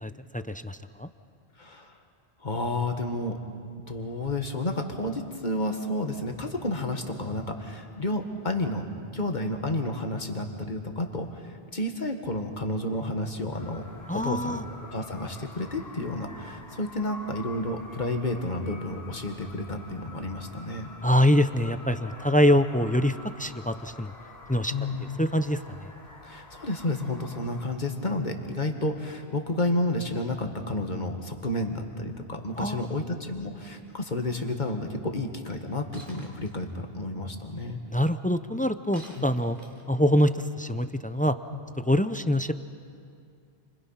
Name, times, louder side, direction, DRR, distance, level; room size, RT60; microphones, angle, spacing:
voice 1, 0.0-1.1 14.1-14.6 21.0-24.1 24.5-24.7 25.2-25.9 32.6-33.0 37.9-39.6 39.9-41.4 41.9-42.5, equal, 10° left, 10 dB, 0.4 m, -24 dB
voice 2, 1.6-1.9 2.4-3.4 3.9-8.8 9.1-13.8 14.1-14.6 14.9-20.9 24.7-25.1 26.2-37.8 39.2-39.4 41.5-41.6, left 1 dB, 45° left, 4 dB, 1.9 m, -31 dB
sound 1, 13.5-27.6, left 2 dB, 70° left, 4.8 m, -47 dB
Shatter, 35.9-36.5 38.9-40.0, right 1 dB, 50° right, 3.8 m, -49 dB
30.0 x 25.0 x 5.8 m, 2.3 s
omnidirectional pair, 1.1 m